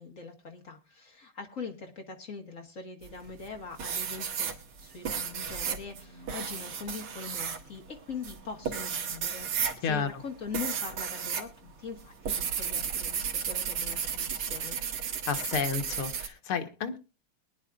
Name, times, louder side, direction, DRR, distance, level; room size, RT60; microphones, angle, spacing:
voice 1, 0.0-4.5 4.8-14.8, left 5 dB, 40° left, 2.0 m, -42 dB
sound 1, 3.0-3.5 3.8-11.5 11.8-16.3, right 7 dB, 85° right, 2.5 m, -33 dB
voice 2, 15.3-17.0, left 6 dB, 85° left, 2.1 m, -31 dB
22.0 x 10.5 x 2.5 m
omnidirectional pair, 2.4 m